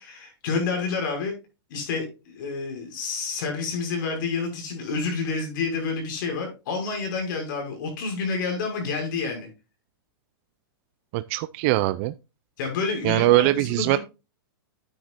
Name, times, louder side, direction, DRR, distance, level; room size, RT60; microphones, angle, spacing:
voice 1, 0.0-1.3 1.7-9.5 12.6-14.0, left 4 dB, 55° left, 6.1 m, -29 dB
voice 2, 11.1-12.1 13.0-14.0, right 18 dB, 35° right, 0.4 m, -21 dB
10.0 x 9.3 x 2.5 m
supercardioid pair, 155°, 13 cm